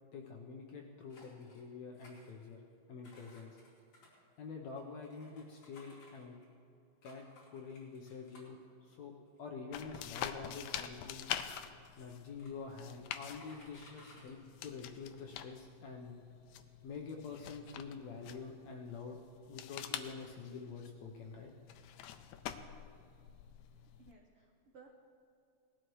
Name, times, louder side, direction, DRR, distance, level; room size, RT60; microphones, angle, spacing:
voice 1, 0.1-2.6 2.9-3.6 4.4-6.4 7.0-9.1 9.4-11.3 12.0-16.2 16.8-19.2 19.5-21.5, left 5 dB, 70° left, 1 dB, 1.7 m, -47 dB
sound 1, 1.1-1.6 1.9-2.7 3.0-6.5 7.0-8.6 9.3-9.4 9.9-11.0 11.8-11.9 12.1-12.8 13.1-14.3 14.8-14.9 15.2-15.5, left 2 dB, 45° left, 3.5 m, -61 dB
sound 2, 9.7-24.1, left 10 dB, 85° left, 1.7 m, -46 dB
voice 2, 23.7-24.9, right 4 dB, 75° right, 0 dB, 1.3 m, -60 dB
19.5 x 12.5 x 3.1 m, 2.5 s
omnidirectional pair, 4.0 m